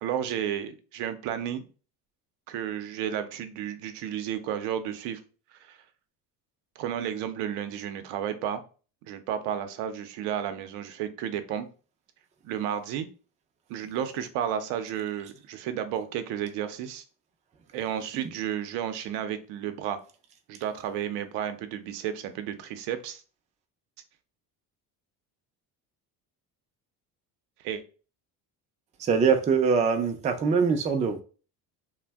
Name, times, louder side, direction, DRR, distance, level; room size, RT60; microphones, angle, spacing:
voice 1, 0.0-1.7 2.5-5.2 5.6-5.8 6.8-8.6 9.1-11.7 12.4-13.1 13.7-17.0 17.7-20.0 20.5-23.2 27.6-27.8, right 9 dB, 85° right, 9 dB, 0.6 m, -32 dB
voice 2, 29.0-31.2, right 5 dB, 20° right, 5 dB, 0.3 m, -23 dB
2.6 x 2.1 x 3.4 m, 0.36 s
cardioid pair, 115°, 39 cm